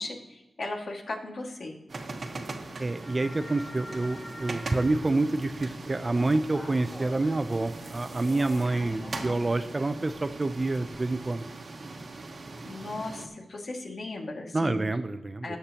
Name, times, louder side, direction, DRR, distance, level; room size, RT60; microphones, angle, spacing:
voice 1, 0.0-1.8 8.7-9.6 12.6-14.8 15.4-15.6, left 2 dB, 60° left, 0 dB, 2.1 m, -37 dB
sound 1, 1.9-13.3, right 3 dB, 50° right, 1.2 m, -41 dB
sound 2, 2.2-9.3, left 1 dB, 25° left, 2.1 m, -46 dB
voice 2, 2.8-11.4 14.5-15.6, right 2 dB, 30° right, 11 dB, 0.5 m, -28 dB
18.5 x 6.6 x 2.9 m, 1.1 s
wide cardioid pair, 85°, 0 cm